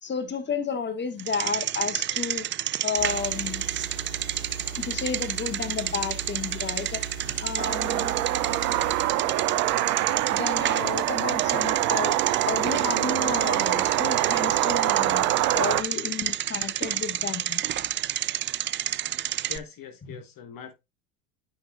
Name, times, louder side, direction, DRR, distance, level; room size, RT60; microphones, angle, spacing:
voice 1, 0.0-2.5 2.8-3.9 4.8-7.0 7.4-8.2 10.3-12.2 12.5-17.6, left 6 dB, 25° left, 1.5 m, -32 dB
Bicycle, 1.2-19.6, right 12 dB, 25° right, 0.4 m, -30 dB
sound 1, 3.0-9.1, right 5 dB, 65° left, 3.8 m, -38 dB
sound 2, 7.6-15.8, right 14 dB, 80° right, 1.0 m, -25 dB
voice 2, 19.5-20.7, left 7 dB, 45° left, 1.3 m, -41 dB
12.0 x 5.5 x 2.3 m
hypercardioid pair, 85°, 46 cm